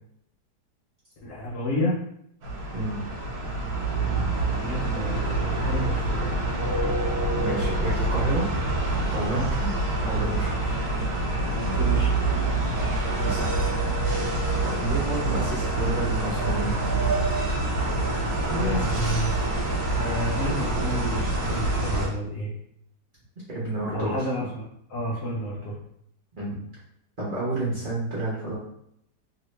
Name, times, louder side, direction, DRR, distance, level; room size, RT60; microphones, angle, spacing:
voice 1, 1.2-2.0 4.0-4.3 4.6-5.2 5.5-6.4 9.3-9.5 11.7-12.3 18.6-19.4 19.9-22.5 23.9-25.8, equal, 65° left, -5 dB, 0.9 m, -30 dB
sound 1, 2.4-22.1, right 2 dB, 65° right, 1.3 m, -26 dB
voice 2, 7.4-8.5 9.1-9.7 10.0-10.7 13.2-13.8 14.6-16.8 18.2-18.9 23.5-24.3 26.4-26.6 27.2-28.5, right 2 dB, 35° right, -8 dB, 0.9 m, -30 dB
3.0 x 2.8 x 3.1 m, 0.73 s
omnidirectional pair, 1.8 m